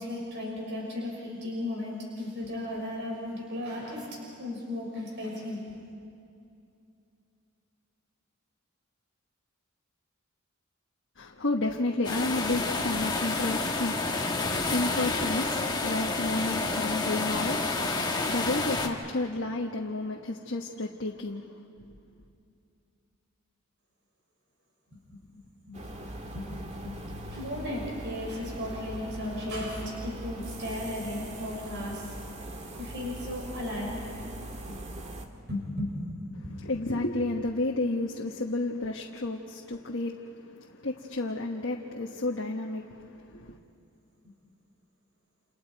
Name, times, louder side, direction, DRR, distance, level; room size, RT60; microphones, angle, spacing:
voice 1, 0.0-4.1 4.4-5.6 25.7-25.9 26.2-32.1 32.8-34.0 34.7-34.8 35.5-36.6, left 1 dB, 60° right, -2 dB, 5.9 m, -35 dB
voice 2, 11.2-21.9 36.4-43.6, left 2 dB, 60° left, 0 dB, 1.3 m, -32 dB
sound 1, 12.0-18.9, left 3 dB, 20° left, 1.7 m, -29 dB
sound 2, 25.7-35.3, right 1 dB, 35° right, 1.8 m, -41 dB
29.5 x 29.0 x 4.7 m, 2.6 s
head